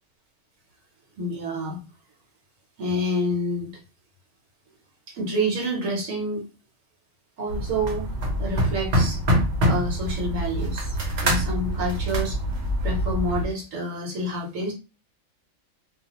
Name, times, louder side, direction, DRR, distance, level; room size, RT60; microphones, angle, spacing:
voice 1, 1.2-1.8 2.8-3.7 5.1-6.5 7.4-8.1 8.3-9.2 9.6-11.0 11.2-12.4 12.8-14.7, equal, 70° right, -1 dB, 1.2 m, -28 dB
sound 1, 7.5-13.5, equal, 55° right, 1.0 m, -25 dB
2.4 x 2.3 x 2.9 m, 0.31 s
omnidirectional pair, 1.5 m